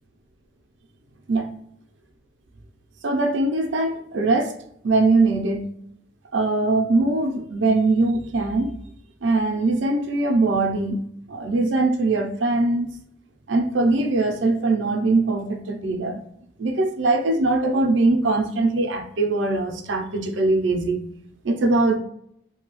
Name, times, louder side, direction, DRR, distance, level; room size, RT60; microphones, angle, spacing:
voice 1, 3.0-4.5 4.8-5.6 6.3-8.7 9.2-11.0 11.3-12.9 13.5-16.2 16.6-21.0 21.4-22.0, right 2 dB, 85° right, 4 dB, 0.6 m, -21 dB
2.8 x 2.3 x 3.1 m, 0.69 s
head